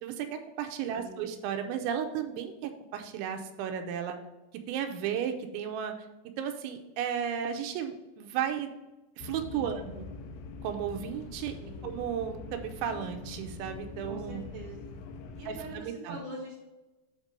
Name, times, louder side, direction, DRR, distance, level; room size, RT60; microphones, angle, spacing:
voice 1, 0.0-4.2 4.7-5.9 6.4-8.7 9.2-10.1 10.6-11.5 11.8-14.4 15.5-16.2, right 8 dB, 85° right, 6 dB, 3.0 m, -34 dB
voice 2, 0.9-1.3 9.5-10.0 11.6-12.0 14.1-15.0 15.4-16.6, right 1 dB, 45° right, -5 dB, 2.8 m, -44 dB
sound 1, 9.2-15.8, left 4 dB, 85° left, 2.9 m, -43 dB
8.6 x 3.6 x 5.1 m, 1.1 s
omnidirectional pair, 5.3 m